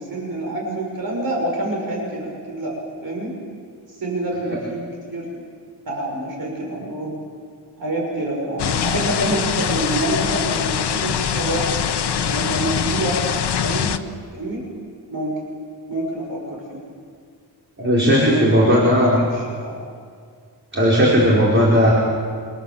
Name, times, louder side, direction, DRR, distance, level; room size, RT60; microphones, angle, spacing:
voice 1, 0.0-3.3 4.0-5.4 5.9-7.2 7.8-11.7 12.1-13.2 13.6-13.9 14.3-14.7 15.1-15.4 15.9-16.8 18.2-19.8, right 1 dB, 55° right, -1 dB, 6.3 m, -27 dB
sound 1, 8.6-14.0, left 8 dB, 75° left, 1.1 m, -23 dB
voice 2, 17.8-19.1 20.7-21.9, equal, 30° right, -5 dB, 5.0 m, -16 dB
28.5 x 27.0 x 7.5 m, 2.1 s
wide cardioid pair, 170°, 41 cm